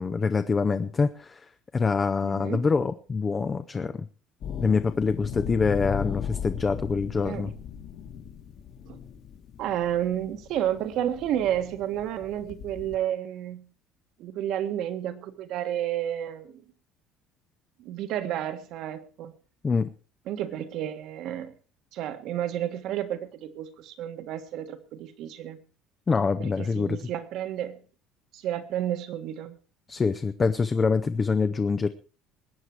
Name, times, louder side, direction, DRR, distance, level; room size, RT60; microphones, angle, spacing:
voice 1, 0.0-1.5 1.7-4.1 4.6-7.5 19.6-19.9 26.1-27.0 29.9-31.9, left 4 dB, 20° left, 9 dB, 0.6 m, -25 dB
voice 2, 2.2-2.7 7.2-7.5 8.8-9.0 9.6-13.6 14.2-16.6 17.8-19.4 20.3-21.5 21.9-25.6 26.4-27.8 28.3-29.6, right 11 dB, 55° right, 9 dB, 1.6 m, -31 dB
sound 1, 4.4-13.0, left 8 dB, 45° left, 1.6 m, -37 dB
21.0 x 9.2 x 4.7 m, 0.37 s
cardioid pair, 170°, 0 cm